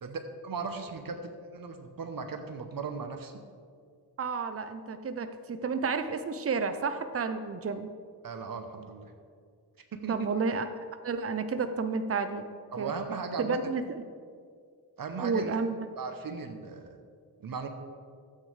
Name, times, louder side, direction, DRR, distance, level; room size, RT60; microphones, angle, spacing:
voice 1, 0.0-1.2 1.5-3.3 8.2-9.1 9.9-10.2 12.7-13.6 15.0-15.6 16.0-17.0 17.4-17.7, right 5 dB, 55° right, 6 dB, 1.0 m, -37 dB
voice 2, 4.2-7.9 10.1-10.7 11.0-12.4 12.8-12.9 13.4-14.0 15.2-15.8, right 4 dB, 35° right, 9 dB, 0.7 m, -31 dB
12.5 x 8.7 x 3.4 m, 2.1 s
cardioid pair, 65°, 42 cm